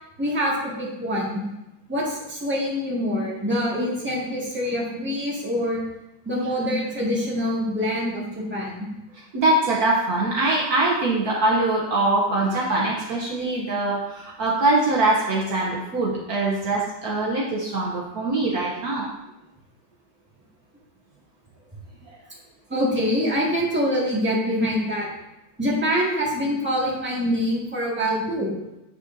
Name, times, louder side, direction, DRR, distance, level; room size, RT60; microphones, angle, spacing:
voice 1, 0.2-1.4 1.9-5.8 6.2-8.7 22.7-25.1 25.6-28.5, equal, 5° right, -6 dB, 1.6 m, -25 dB
voice 2, 9.3-19.1, right 2 dB, 60° right, -3 dB, 1.3 m, -23 dB
8.5 x 6.4 x 2.6 m, 0.93 s
omnidirectional pair, 2.0 m